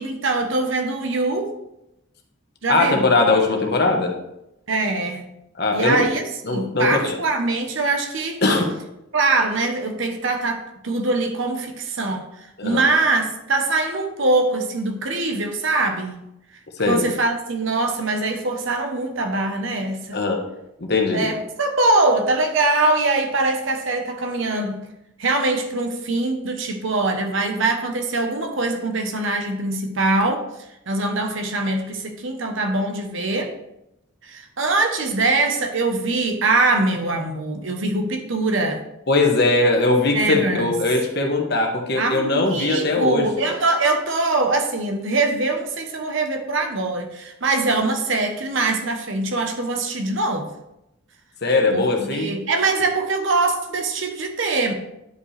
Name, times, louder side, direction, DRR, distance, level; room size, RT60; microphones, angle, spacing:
voice 1, 0.0-1.5 2.6-3.1 4.7-5.3 5.7-6.2 6.5-8.4 9.1-12.3 12.6-16.2 16.9-20.2 21.1-24.9 25.2-30.5 30.9-33.5 34.2-38.8 40.1-40.7 42.0-50.5 51.7-54.7, right 2 dB, 65° right, 5 dB, 1.0 m, -23 dB
voice 2, 2.7-4.1 5.6-6.0 6.4-7.2 8.4-8.7 12.6-12.8 16.8-17.1 20.1-20.4 20.8-21.3 39.1-43.3 51.4-52.3, left 3 dB, 50° left, 2 dB, 1.2 m, -20 dB
10.5 x 5.2 x 3.3 m, 0.86 s
head